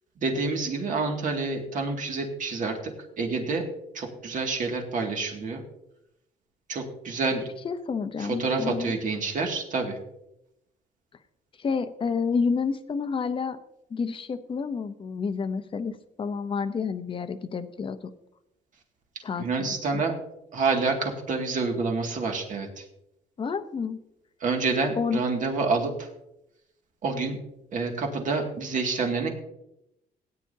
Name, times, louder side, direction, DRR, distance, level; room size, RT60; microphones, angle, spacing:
voice 1, 0.2-3.7 3.9-5.6 6.7-7.5 8.2-10.0 19.4-20.2 20.5-22.8 24.4-26.1 27.0-27.4 27.7-29.3, right 4 dB, 55° right, 2 dB, 2.3 m, -28 dB
voice 2, 7.6-8.9 11.6-13.6 13.9-18.0 19.2-20.0 23.4-24.0 25.0-25.2, left 5 dB, 35° left, 9 dB, 0.8 m, -29 dB
17.5 x 9.7 x 2.8 m, 0.85 s
cardioid pair, 125°, 16 cm